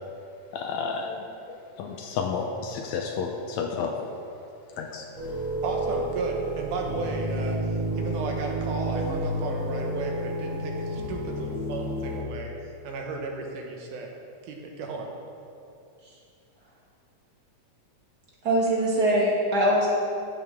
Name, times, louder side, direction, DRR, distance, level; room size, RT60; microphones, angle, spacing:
voice 1, 0.5-3.9 4.8-5.1, left 5 dB, 75° left, 2 dB, 1.8 m, -31 dB
sound 1, 5.2-12.2, right 1 dB, 30° left, 2.9 m, -30 dB
voice 2, 5.6-12.5 12.8-14.1 14.4-15.1, right 3 dB, 85° right, 1 dB, 2.6 m, -34 dB
voice 3, 18.4-19.9, right 1 dB, 40° right, -5 dB, 1.9 m, -22 dB
14.0 x 7.3 x 3.6 m, 2.6 s
omnidirectional pair, 3.6 m